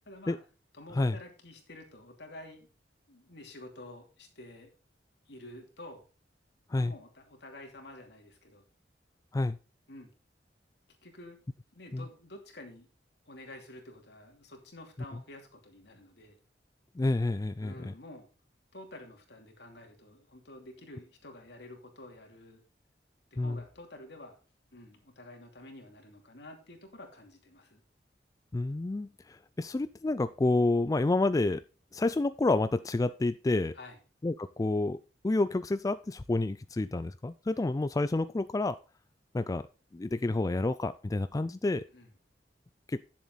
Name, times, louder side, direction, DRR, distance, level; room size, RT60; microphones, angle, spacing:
voice 1, 0.1-0.4 0.7-2.7 3.1-4.7 5.3-6.0 6.7-8.6 9.9-10.1 11.0-11.4 11.7-12.9 13.2-16.4 17.6-18.3 18.7-22.6 23.3-24.3 24.7-27.8 33.7-34.0 41.9-42.1, left 1 dB, 70° left, 3 dB, 2.8 m, -49 dB
voice 2, 17.0-17.9 23.4-23.6 28.5-31.6 31.9-33.7 34.2-35.0 35.2-38.8 39.3-39.7 39.9-41.8 42.9-43.0, left 2 dB, 20° left, 12 dB, 0.3 m, -29 dB
10.5 x 7.3 x 4.0 m, 0.35 s
head